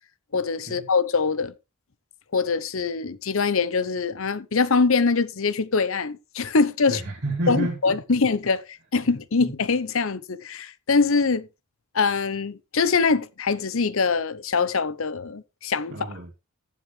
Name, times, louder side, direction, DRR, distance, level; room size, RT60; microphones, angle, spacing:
voice 1, 0.3-1.5 2.3-7.0 7.5-11.5 11.9-15.9, left 4 dB, 65° left, 0.8 m, -23 dB
voice 2, 6.9-7.9 9.0-9.1 9.4-9.5 15.9-16.3, right 1 dB, 50° right, 2.7 m, -30 dB
14.5 x 7.5 x 3.2 m
head